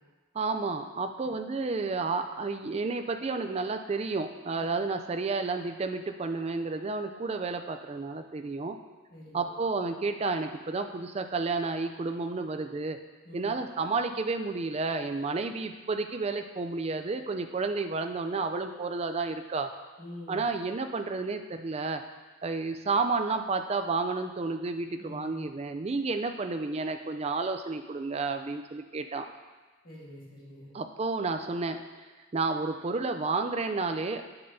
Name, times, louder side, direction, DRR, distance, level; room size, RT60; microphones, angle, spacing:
voice 1, 0.3-8.8 9.3-13.0 13.3-19.7 20.3-22.0 22.4-29.3 30.7-31.8 32.3-34.2, right 3 dB, 30° right, 7 dB, 0.3 m, -31 dB
voice 2, 9.1-9.5 13.2-13.5 20.0-20.4 25.0-25.4 29.8-30.7, left 1 dB, 45° left, -6 dB, 1.8 m, -45 dB
8.7 x 6.8 x 2.7 m, 1.3 s
head